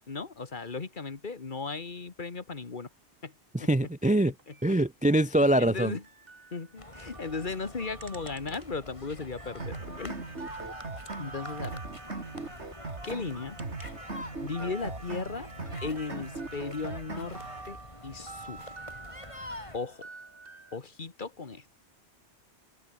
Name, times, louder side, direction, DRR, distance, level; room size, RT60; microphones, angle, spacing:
voice 1, 0.1-2.9 3.2-3.3 3.6-3.7 4.5-4.8 5.4-6.0 6.5-10.2 11.2-11.8 13.0-13.6 14.4-15.5 15.8-17.8 18.0-18.8 19.7-20.1 20.7-21.6, left 4 dB, 45° left, 1.7 m, -36 dB
voice 2, 3.5-4.3 4.6-5.9, right 1 dB, 15° right, 0.3 m, -24 dB
sound 1, 4.4-8.9 9.2-14.1 14.4-20.8, right 3 dB, 55° right, 2.3 m, -49 dB
sound 2, 6.8-19.8, left 1 dB, 30° left, 3.4 m, -46 dB
sound 3, 9.6-17.6, right 3 dB, 85° right, 3.5 m, -40 dB
open air
omnidirectional pair, 1.1 m